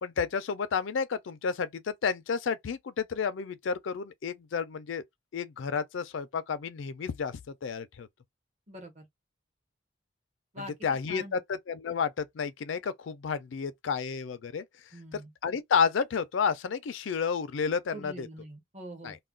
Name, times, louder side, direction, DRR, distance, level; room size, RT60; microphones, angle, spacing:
voice 1, 0.0-5.0 5.3-8.1 10.6-14.6 15.1-18.3 19.0-19.2, left 6 dB, 85° left, 0.4 m, -31 dB
voice 2, 8.7-9.1 10.5-11.4 14.9-15.3 17.9-19.2, equal, 40° right, 0.9 m, -44 dB
2.3 x 2.1 x 3.7 m
head